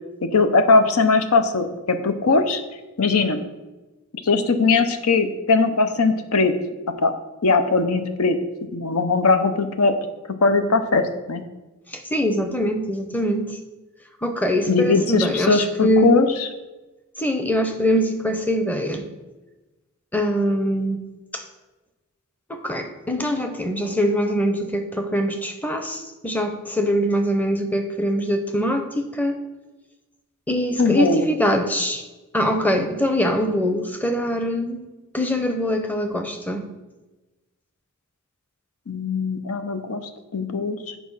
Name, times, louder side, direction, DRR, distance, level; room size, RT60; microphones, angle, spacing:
voice 1, 0.3-2.6 3.0-3.4 4.2-6.5 7.0-7.1 7.4-8.4 8.7-10.0 10.4-11.4 14.7-16.5 30.8-31.3 38.9-40.0 40.3-40.8, left 3 dB, 85° left, 8 dB, 0.7 m, -20 dB
voice 2, 11.9-13.6 14.2-16.1 17.2-19.0 20.1-21.0 21.3-21.4 22.5-29.4 30.5-32.0 32.3-34.8 35.1-36.7, equal, 10° left, 6 dB, 0.7 m, -23 dB
8.5 x 4.7 x 5.5 m, 1.1 s
head